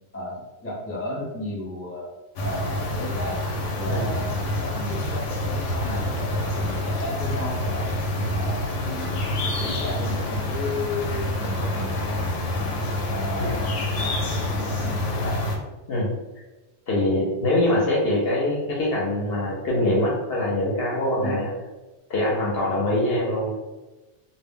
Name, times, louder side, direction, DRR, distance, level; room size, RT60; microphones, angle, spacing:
voice 1, 0.1-2.1 2.4-7.9 8.3-12.3 13.1-13.9 14.4-15.4 21.2-21.4, left 1 dB, 15° left, -4 dB, 0.5 m, -34 dB
sound 1, 2.4-15.6, left 1 dB, 90° left, 0.9 m, -27 dB
voice 2, 16.9-21.5 22.1-23.6, left 1 dB, 65° left, -3 dB, 0.7 m, -23 dB
2.2 x 2.0 x 3.5 m, 1.1 s
omnidirectional pair, 1.2 m